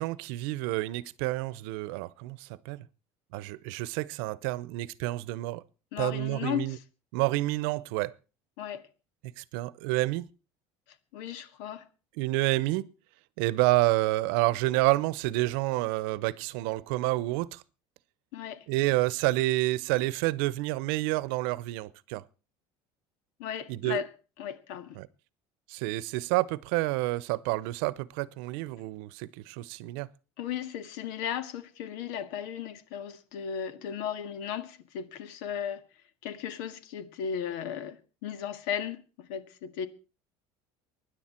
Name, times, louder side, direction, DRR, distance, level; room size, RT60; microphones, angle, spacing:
voice 1, 0.0-2.9 3.3-5.6 6.0-6.8 7.1-8.1 9.4-10.3 12.2-12.9 13.4-17.6 18.7-22.2 23.7-24.0 25.0-25.1 25.7-30.1, right 19 dB, 90° right, 0.8 m, -29 dB
voice 2, 5.9-6.8 8.6-8.9 11.1-11.9 18.3-18.7 23.4-24.1 24.4-25.0 30.4-35.8 36.2-39.9, left 9 dB, 80° left, 1.9 m, -36 dB
24.0 x 10.5 x 4.4 m
cardioid pair, 180°, 12 cm